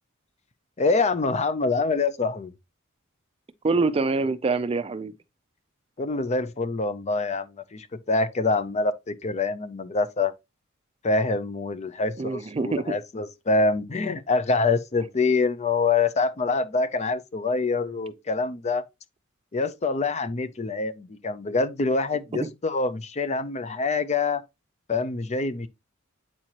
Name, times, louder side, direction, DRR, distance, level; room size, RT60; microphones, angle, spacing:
voice 1, 0.8-2.5 6.0-10.3 11.0-18.8 19.5-24.4 24.9-25.7, left 3 dB, 35° left, 0.5 m, -25 dB
voice 2, 3.6-5.1 12.2-13.0 22.3-22.5, right 3 dB, 30° right, 0.4 m, -25 dB
8.7 x 4.4 x 2.9 m
head